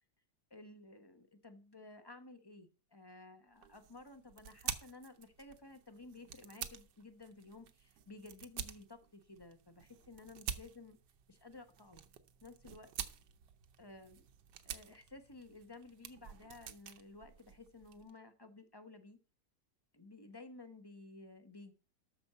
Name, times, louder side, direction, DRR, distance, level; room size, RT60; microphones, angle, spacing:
voice 1, 0.5-11.0 11.3-12.0 12.4-12.9 13.8-14.3 14.6-19.2 19.9-21.7, left 2 dB, 15° left, 8 dB, 0.9 m, -54 dB
sound 1, 3.6-18.1, right 8 dB, 80° right, 1.5 m, -48 dB
13.0 x 4.8 x 6.7 m, 0.34 s
omnidirectional pair, 1.9 m